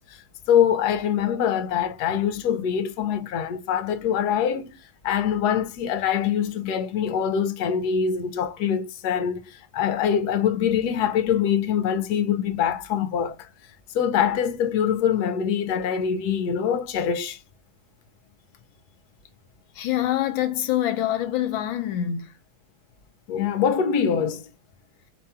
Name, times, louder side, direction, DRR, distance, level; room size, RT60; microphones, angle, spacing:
voice 1, 0.5-4.8 5.0-13.5 13.9-17.4 23.3-24.4, left 8 dB, 65° left, 1.1 m, -24 dB
voice 2, 19.8-22.2, left 12 dB, 80° left, 1.4 m, -25 dB
5.3 x 2.4 x 4.3 m
omnidirectional pair, 2.2 m